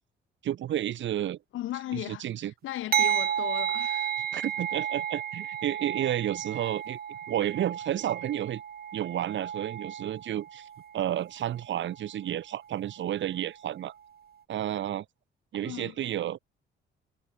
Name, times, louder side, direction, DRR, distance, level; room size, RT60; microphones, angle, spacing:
voice 1, 0.4-1.4 1.9-2.5 4.2-8.6 8.9-10.7 10.9-13.9 14.5-15.1 15.5-16.4, right 11 dB, 70° right, 2.2 m, -31 dB
voice 2, 1.5-2.2 2.6-4.1 15.6-15.9, left 14 dB, 85° left, 3.7 m, -36 dB
sound 1, 2.9-12.0 12.7-12.9, right 8 dB, 50° right, 1.7 m, -33 dB
cardioid pair, 90°, 20 cm